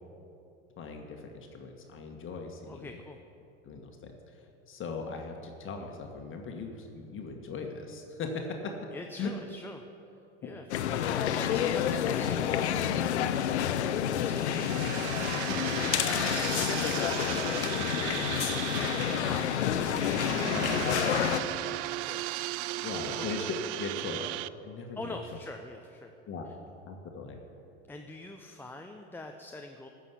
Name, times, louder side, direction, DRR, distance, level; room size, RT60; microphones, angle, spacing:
voice 1, 0.8-2.9 3.6-8.7 9.2-9.3 10.4-10.6 15.5-15.6 20.5-21.2 22.8-24.3 24.6-25.2 26.3-26.4 26.9-27.4, left 4 dB, 35° left, 2 dB, 1.6 m, -39 dB
voice 2, 2.6-3.2 8.9-9.8 10.1-13.4 13.7-16.9 17.3-20.0 20.9-22.2 22.6-22.8 23.1-23.3 24.1-24.2 25.0-26.1 27.9-29.9, left 2 dB, 5° left, 4 dB, 0.8 m, -45 dB
sound 1, 10.7-21.4, left 9 dB, 75° left, 0.8 m, -29 dB
sound 2, 14.2-24.5, right 17 dB, 45° right, 0.4 m, -36 dB
14.5 x 6.5 x 8.3 m, 2.7 s
hypercardioid pair, 80°, 34 cm